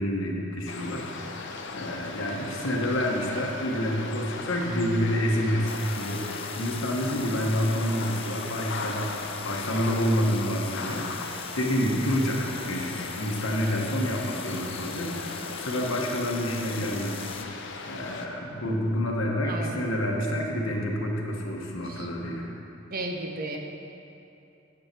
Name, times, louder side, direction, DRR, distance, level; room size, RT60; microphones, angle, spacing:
voice 1, 0.0-9.1 9.4-17.6 17.9-22.6, equal, 80° left, 0 dB, 1.2 m, -28 dB
sound 1, 0.7-18.3, left 3 dB, 65° left, 0.7 m, -38 dB
sound 2, 5.7-17.4, left 6 dB, 30° left, 0.5 m, -41 dB
voice 2, 19.4-19.9 21.8-22.1 22.9-23.6, right 2 dB, 50° right, 2 dB, 0.9 m, -34 dB
8.6 x 8.1 x 4.5 m, 2.7 s
head